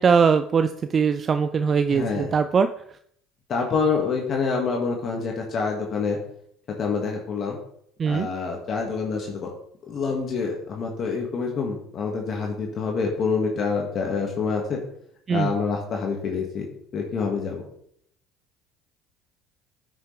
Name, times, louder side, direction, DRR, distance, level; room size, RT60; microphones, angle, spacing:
voice 1, 0.0-2.7 8.0-8.3 15.3-15.5, right 6 dB, 40° right, 10 dB, 0.4 m, -21 dB
voice 2, 1.9-2.3 3.5-6.2 6.8-7.6 8.0-9.5 9.9-14.8 15.3-16.7 16.9-17.7, left 5 dB, 50° left, 0 dB, 1.8 m, -26 dB
9.5 x 6.4 x 3.3 m, 0.67 s
hypercardioid pair, 70°, 0 cm